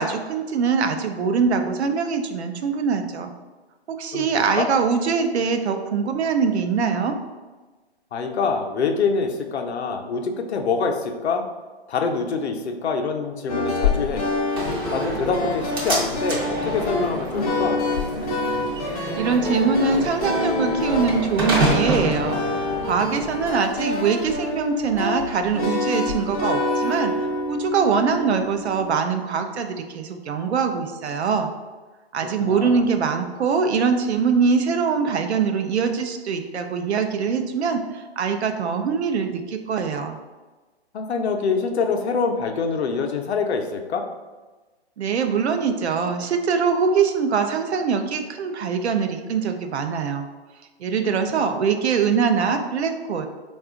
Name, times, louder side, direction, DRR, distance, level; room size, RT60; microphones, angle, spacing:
voice 1, 0.0-3.3 3.9-7.2 19.2-22.4 22.8-27.1 27.5-31.5 32.1-40.2 45.0-50.3 50.8-53.3, right 5 dB, 75° right, 6 dB, 0.5 m, -23 dB
voice 2, 4.1-4.7 8.1-11.4 11.9-14.3 14.9-17.8 32.2-32.8 40.9-44.1, left 5 dB, 75° left, 4 dB, 0.6 m, -25 dB
sound 1, 13.5-28.9, left 2 dB, 35° left, 0.5 m, -27 dB
Slam, 14.6-23.6, right 1 dB, 20° right, 0.5 m, -28 dB
3.7 x 2.3 x 3.5 m, 1.3 s
hypercardioid pair, 150°, 33 cm